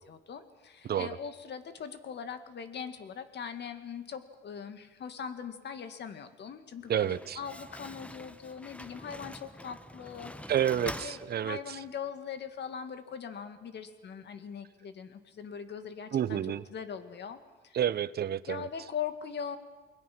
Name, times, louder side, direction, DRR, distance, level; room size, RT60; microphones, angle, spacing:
voice 1, 0.1-10.3 10.8-16.4 16.7-17.4 17.6-17.8 18.5-19.6, left 7 dB, 60° left, 2.2 m, -41 dB
Slam, 6.8-11.9, left 1 dB, 5° left, 1.0 m, -45 dB
voice 2, 6.9-7.4 10.5-11.8 16.1-16.6 17.7-18.7, right 10 dB, 55° right, 0.8 m, -30 dB
29.0 x 21.5 x 6.1 m
cardioid pair, 90°, 20 cm